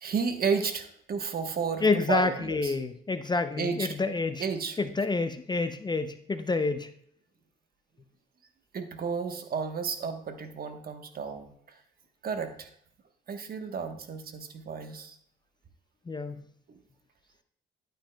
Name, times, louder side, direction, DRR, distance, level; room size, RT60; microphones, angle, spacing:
voice 1, 0.0-2.7 3.6-3.9 4.4-4.8 8.7-11.5 12.2-12.7 13.3-15.1 16.7-16.8, right 5 dB, 50° right, 7 dB, 1.1 m, -32 dB
voice 2, 1.8-4.5 4.8-6.9 16.1-16.4, left 3 dB, 20° left, 9 dB, 0.5 m, -28 dB
11.5 x 9.0 x 2.2 m, 0.65 s
cardioid pair, 90°, 20 cm